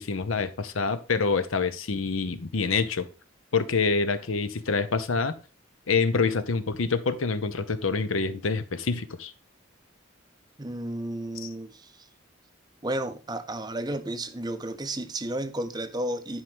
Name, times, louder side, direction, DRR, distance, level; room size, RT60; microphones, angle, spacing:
voice 1, 0.0-3.1 3.5-5.3 5.9-9.3 11.4-11.5, left 4 dB, 80° left, 0.8 m, -26 dB
voice 2, 10.6-11.9 12.8-16.4, right 1 dB, 20° right, 0.6 m, -32 dB
10.5 x 4.7 x 3.6 m
head